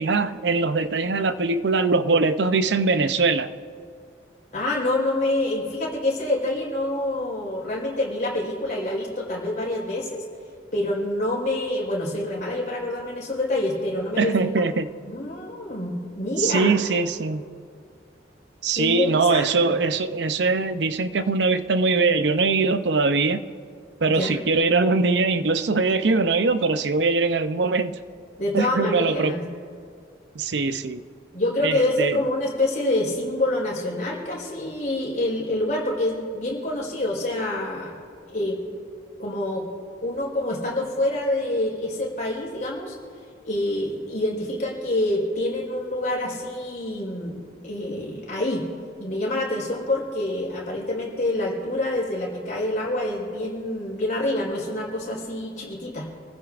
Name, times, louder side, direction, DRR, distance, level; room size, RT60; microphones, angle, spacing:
voice 1, 0.0-3.5 14.2-14.9 16.4-17.5 18.6-23.4 24.0-28.0 28.5-29.4 30.3-31.0 31.6-32.2, right 4 dB, 70° right, 11 dB, 0.6 m, -22 dB
voice 2, 4.5-10.2 10.7-14.3 15.1-16.8 18.7-19.8 24.1-24.4 28.4-29.4 31.3-38.0 38.3-38.6 39.2-39.6 40.0-42.9 43.4-48.6 49.0-56.1, left 1 dB, 45° left, -3 dB, 4.2 m, -26 dB
27.0 x 15.0 x 2.5 m, 2.2 s
head